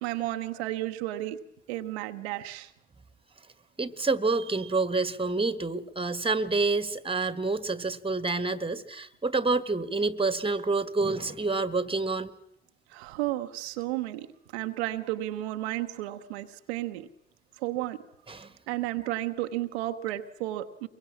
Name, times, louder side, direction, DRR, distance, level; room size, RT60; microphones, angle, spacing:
voice 1, 0.0-1.4 1.7-2.7 12.9-14.3 14.5-17.1 17.6-18.0 18.7-20.9, right 15 dB, 75° right, 7 dB, 0.9 m, -32 dB
voice 2, 3.8-12.3 18.3-18.5, right 3 dB, 15° right, 15 dB, 1.5 m, -28 dB
23.5 x 23.0 x 7.4 m, 0.75 s
figure-of-eight pair, 45°, 32 cm